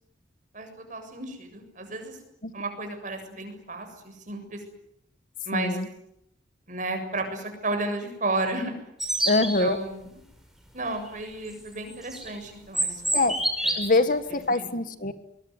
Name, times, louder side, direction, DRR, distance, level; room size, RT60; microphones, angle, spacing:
voice 1, 0.5-2.2 2.5-4.6 5.5-5.8 6.7-8.7 9.4-10.1 10.7-13.3 13.6-13.8 14.5-14.7, right 2 dB, 45° right, 6 dB, 7.4 m, -33 dB
voice 2, 5.5-5.9 9.2-9.8 13.1-13.4 13.7-15.1, left 2 dB, 45° left, 11 dB, 1.6 m, -24 dB
sound 1, 9.0-9.7 11.9-12.3 12.7-14.0, right 1 dB, ahead, 5.4 m, -27 dB
24.0 x 22.0 x 9.8 m, 0.78 s
head